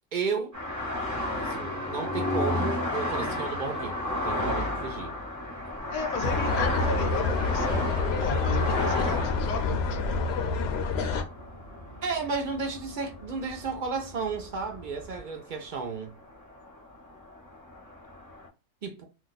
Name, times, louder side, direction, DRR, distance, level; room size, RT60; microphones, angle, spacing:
voice 1, 0.1-0.5 1.4-5.1 12.0-16.1 18.8-19.1, right 4 dB, 60° right, 0.5 m, -33 dB
sound 1, 0.5-13.8 14.1-14.8 15.1-15.9 16.2-18.5, left 1 dB, 20° right, 0.6 m, -33 dB
sound 2, 5.8-15.2, equal, 20° left, 0.7 m, -49 dB
voice 2, 5.9-10.0, left 4 dB, 90° left, 1.1 m, -34 dB
sound 3, 6.2-11.2, left 4 dB, 65° left, 0.7 m, -28 dB
2.5 x 2.3 x 4.0 m
omnidirectional pair, 1.4 m